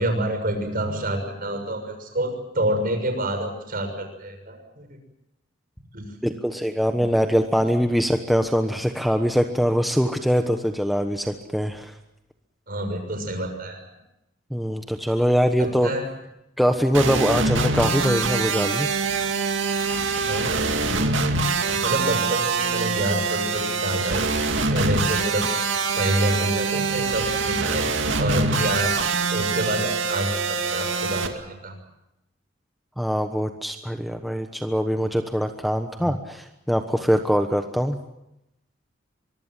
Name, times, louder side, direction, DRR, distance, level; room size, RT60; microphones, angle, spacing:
voice 1, 0.0-5.0 5.9-6.1 12.7-13.8 15.6-16.1 20.2-20.7 21.8-27.9 28.2-28.9 29.3-31.8 36.0-36.1, right 1 dB, 50° right, 6 dB, 6.6 m, -28 dB
voice 2, 6.2-11.9 14.5-15.9 16.6-18.9 33.0-38.0, equal, ahead, 5 dB, 1.1 m, -23 dB
sound 1, 16.9-31.3, right 4 dB, 70° right, 2.4 m, -24 dB
24.0 x 23.0 x 7.5 m, 0.86 s
head